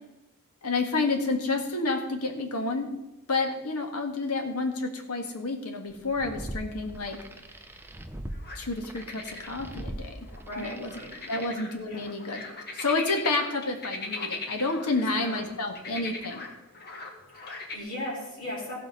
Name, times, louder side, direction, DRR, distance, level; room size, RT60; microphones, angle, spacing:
voice 1, 0.6-3.0 3.3-7.2 8.6-10.1 10.6-10.9 11.3-12.4 12.7-16.4, left 3 dB, 90° left, 4 dB, 1.7 m, -29 dB
sound 1, 5.9-11.5, right 1 dB, 10° right, 0.7 m, -41 dB
sound 2, 8.3-8.6 9.0-15.5 15.7-17.8, left 3 dB, 45° left, 1.6 m, -40 dB
voice 2, 10.5-11.5 11.9-12.1 14.9-16.0 17.3-18.8, left 1 dB, 65° left, -8 dB, 4.1 m, -39 dB
15.5 x 5.7 x 5.4 m, 0.96 s
head